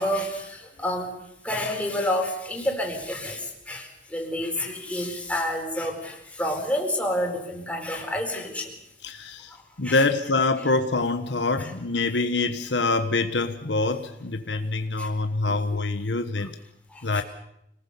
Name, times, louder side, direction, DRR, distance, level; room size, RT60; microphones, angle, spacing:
voice 1, 0.0-8.7 9.5-10.0 11.6-11.7 15.0-15.1 15.5-15.6 16.9-17.2, left 1 dB, 5° left, 1 dB, 4.4 m, -29 dB
voice 2, 9.0-9.5 9.8-16.5 17.0-17.2, left 3 dB, 70° left, 8 dB, 1.3 m, -25 dB
26.0 x 19.0 x 7.0 m, 0.78 s
head